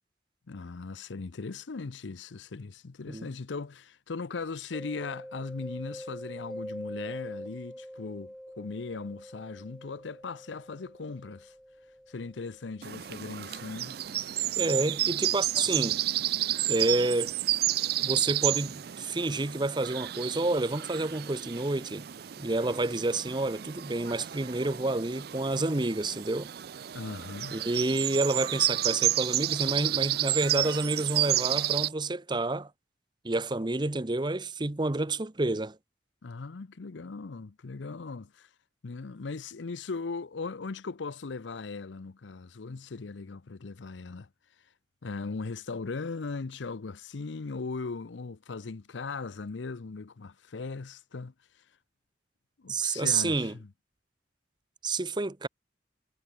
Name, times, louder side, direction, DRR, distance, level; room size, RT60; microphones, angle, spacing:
voice 1, 0.5-11.5 12.1-14.0 26.9-27.6 36.2-38.5 38.8-44.3 45.0-51.3 52.6-53.7, left 4 dB, 90° left, 0.7 m, -38 dB
Mallet percussion, 4.7-14.3, equal, ahead, 0.5 m, -45 dB
sound 1, 12.8-31.9, right 14 dB, 55° right, 0.5 m, -31 dB
voice 2, 14.6-16.0 16.7-17.3 18.0-22.1 22.4-26.5 27.5-32.7 33.2-35.8 52.7-53.5 54.8-55.5, right 2 dB, 25° right, 0.8 m, -29 dB
head